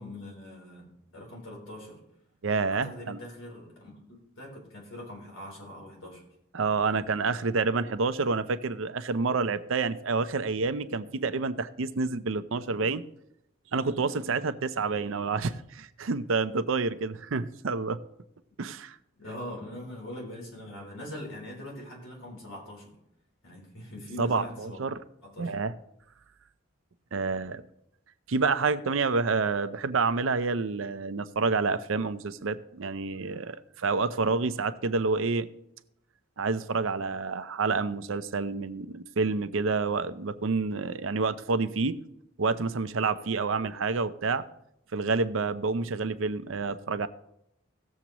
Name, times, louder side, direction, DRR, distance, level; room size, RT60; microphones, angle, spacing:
voice 1, 0.0-2.0 2.7-6.2 19.2-22.9 23.4-24.8 25.2-25.5, left 1 dB, 80° left, 3.8 m, -42 dB
voice 2, 2.4-3.2 6.5-13.0 13.7-18.0 18.6-19.0 24.2-25.0 25.4-25.7 27.1-27.6 28.3-35.5 36.4-42.0 42.4-44.4 44.9-47.1, right 4 dB, 75° right, 0.6 m, -28 dB
18.0 x 7.2 x 3.0 m
head